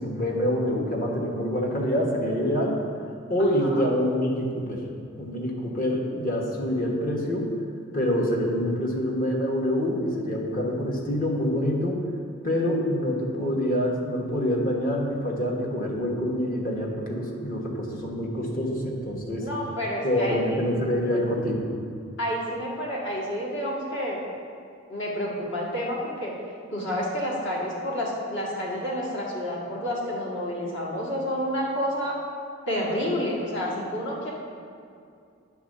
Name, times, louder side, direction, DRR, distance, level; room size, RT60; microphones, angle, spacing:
voice 1, 0.0-2.8 3.3-4.8 5.2-7.5 7.9-12.0 12.4-19.5 20.0-21.7, equal, 45° left, -1 dB, 1.2 m, -26 dB
voice 2, 3.6-3.9 19.4-20.6 22.2-24.2 24.9-26.3 26.7-32.2 32.7-34.3, equal, 65° left, -5 dB, 1.8 m, -29 dB
9.3 x 3.6 x 6.5 m, 2.4 s
head